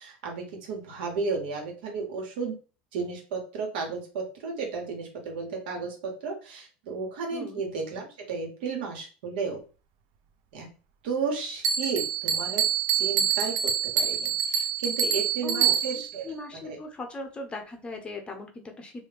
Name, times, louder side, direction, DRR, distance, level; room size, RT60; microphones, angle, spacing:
voice 1, 0.0-2.6 2.9-9.6 10.5-10.7 11.0-12.7 12.9-16.8, right 4 dB, 75° right, 1 dB, 1.3 m, -33 dB
voice 2, 7.3-7.6 15.4-15.8 16.2-18.9, left 3 dB, 20° left, 4 dB, 0.7 m, -38 dB
Bell, 11.6-16.2, right 8 dB, 60° right, 0.4 m, -26 dB
3.1 x 2.2 x 3.3 m, 0.35 s
supercardioid pair, 130°, 6 cm